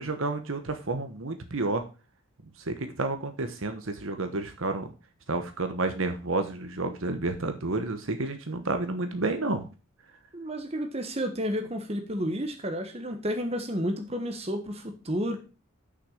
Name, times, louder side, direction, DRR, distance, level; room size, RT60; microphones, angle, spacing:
voice 1, 0.0-1.8 2.7-4.9 5.3-9.7, right 2 dB, 65° right, 7 dB, 1.1 m, -30 dB
voice 2, 10.3-15.4, equal, 30° right, 5 dB, 1.4 m, -31 dB
6.7 x 6.1 x 6.5 m, 0.32 s
head